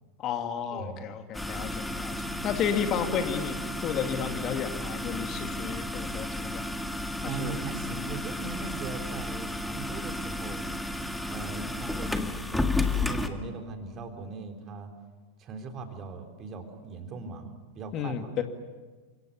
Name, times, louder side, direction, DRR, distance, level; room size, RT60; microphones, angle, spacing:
voice 1, 0.2-6.7 7.2-7.6 17.9-18.4, left 8 dB, 35° left, 6 dB, 2.2 m, -32 dB
voice 2, 0.7-1.1 1.5-1.9 2.3-2.5 2.9-3.0 7.2-10.6 11.3-14.9 15.4-17.5 17.7-18.2, right 4 dB, 30° right, 5 dB, 3.8 m, -40 dB
sound 1, 1.3-13.3, left 2 dB, 5° left, 1.9 m, -32 dB
30.0 x 26.0 x 7.1 m, 1.3 s
figure-of-eight pair, 90°, 0 cm